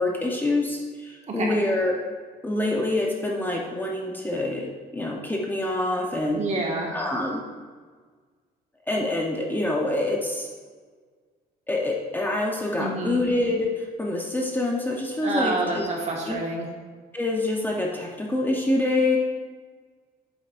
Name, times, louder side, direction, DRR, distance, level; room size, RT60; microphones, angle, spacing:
voice 1, 0.0-2.0 2.4-6.4 6.9-7.4 8.9-10.5 11.7-15.9 16.3-16.4 17.1-19.2, left 2 dB, 10° left, -1 dB, 0.9 m, -26 dB
voice 2, 1.3-1.6 6.3-6.9 12.8-13.2 15.2-16.7, right 2 dB, 40° right, -1 dB, 1.7 m, -28 dB
8.1 x 7.4 x 2.5 m, 1.5 s
cardioid pair, 110°, 17 cm